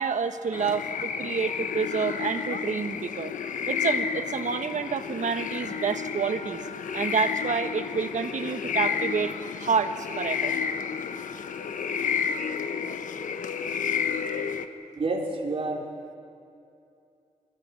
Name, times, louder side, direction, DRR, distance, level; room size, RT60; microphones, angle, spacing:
voice 1, 0.0-3.3 3.7-6.6 6.9-9.3 9.6-10.5, right 6 dB, 70° right, 8 dB, 1.3 m, -28 dB
sound 1, 0.5-14.7, left 7 dB, 80° left, 1.0 m, -31 dB
voice 2, 15.0-15.9, right 2 dB, 45° right, -2 dB, 3.9 m, -29 dB
24.0 x 18.5 x 8.3 m, 2.6 s
cardioid pair, 85°, 13 cm